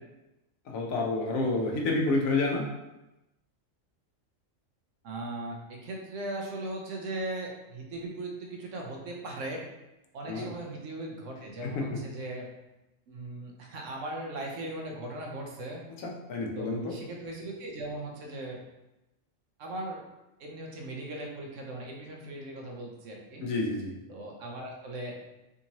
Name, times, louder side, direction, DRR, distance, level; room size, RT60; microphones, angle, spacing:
voice 1, 0.7-2.6 10.3-10.5 11.6-12.0 16.0-17.0 23.4-23.9, left 2 dB, 85° left, 0 dB, 1.1 m, -29 dB
voice 2, 5.0-9.6 10.1-12.5 13.1-15.8 16.5-18.6 19.6-20.0 20.4-23.5 24.1-25.1, right 2 dB, 70° right, 0 dB, 1.0 m, -38 dB
3.6 x 2.7 x 2.9 m, 0.95 s
omnidirectional pair, 1.4 m